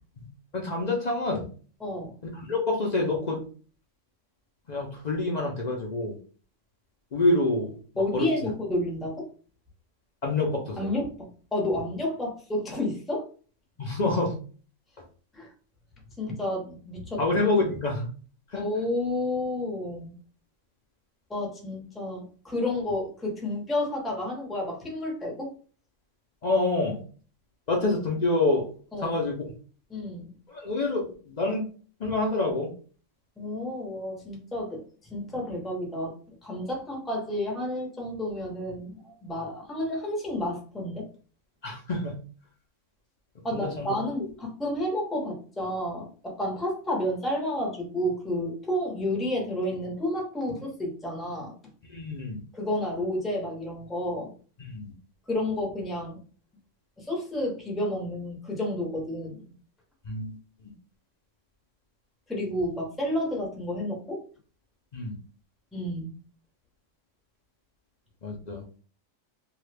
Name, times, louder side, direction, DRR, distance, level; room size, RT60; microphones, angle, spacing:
voice 1, 0.5-1.5 2.3-3.4 4.7-6.2 7.1-8.5 10.2-10.9 13.8-14.3 17.2-18.1 18.5-18.7 26.4-27.0 27.7-28.7 29.0-29.5 30.5-31.7 32.0-32.7 41.6-42.2 43.5-43.9 51.9-52.4 54.6-54.9 60.1-60.4 64.9-65.1 68.2-68.8, left 2 dB, 50° left, -1 dB, 0.5 m, -27 dB
voice 2, 1.8-2.1 8.0-9.3 10.8-13.3 15.3-15.5 16.2-17.2 18.5-20.2 21.3-25.5 28.9-29.2 29.9-30.3 33.4-36.1 36.4-41.1 43.4-51.5 52.5-54.3 55.3-56.2 57.0-59.4 62.3-64.2 65.7-66.1, left 1 dB, ahead, -1 dB, 0.6 m, -31 dB
2.9 x 2.3 x 3.3 m, 0.40 s
omnidirectional pair, 1.4 m